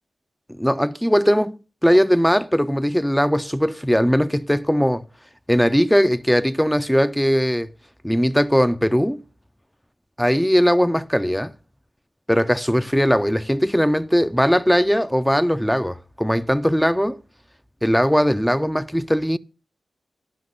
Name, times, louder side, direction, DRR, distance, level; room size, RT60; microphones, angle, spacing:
voice 1, 0.5-5.0 5.5-7.7 8.0-9.2 10.2-11.5 12.3-17.2 17.8-19.4, equal, 5° left, 0.4 m, -19 dB
11.0 x 5.9 x 6.3 m
cardioid pair, 50°, 0 cm